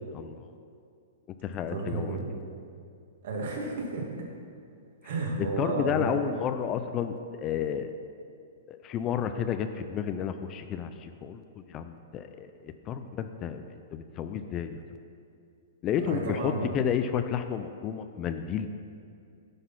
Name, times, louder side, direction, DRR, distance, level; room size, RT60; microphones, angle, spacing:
voice 1, 0.1-0.5 1.4-2.2 5.4-7.9 8.7-13.6 13.9-14.8 15.8-18.7, left 8 dB, 25° left, 9 dB, 0.3 m, -31 dB
voice 2, 1.7-2.3 3.2-4.3 5.0-6.1 16.0-16.7, right 3 dB, 60° right, -1 dB, 1.8 m, -32 dB
10.0 x 4.1 x 5.7 m, 2.4 s
hypercardioid pair, 160°, 0 cm